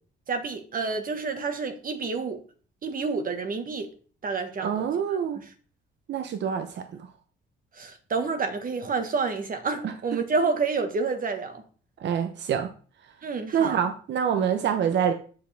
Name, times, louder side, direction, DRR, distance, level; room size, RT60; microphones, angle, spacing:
voice 1, 0.3-2.4 2.8-3.9 4.2-4.8 5.1-5.2 7.8-11.6 13.2-13.8, right 4 dB, 45° right, 1.5 m, -29 dB
voice 2, 4.6-5.4 6.1-6.8 9.8-9.9 12.0-12.7 13.5-15.1, right 8 dB, 65° right, 0.8 m, -26 dB
7.8 x 6.6 x 3.5 m
cardioid pair, 90°, 20 cm